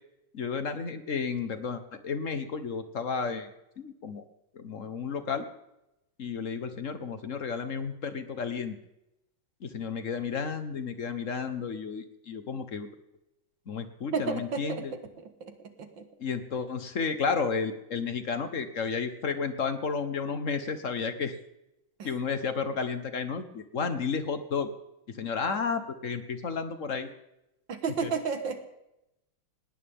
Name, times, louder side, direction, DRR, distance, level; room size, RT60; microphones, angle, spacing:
voice 1, 0.3-3.5 3.8-4.2 4.5-5.5 6.2-8.7 9.6-12.9 13.7-14.9 16.2-21.4 22.0-24.7 25.1-27.1 28.0-28.1, left 5 dB, 45° left, 9 dB, 1.3 m, -32 dB
voice 2, 14.1-14.8 15.8-16.1 27.7-28.6, right 5 dB, 60° right, 8 dB, 2.1 m, -31 dB
19.5 x 18.5 x 3.7 m, 0.88 s
omnidirectional pair, 2.4 m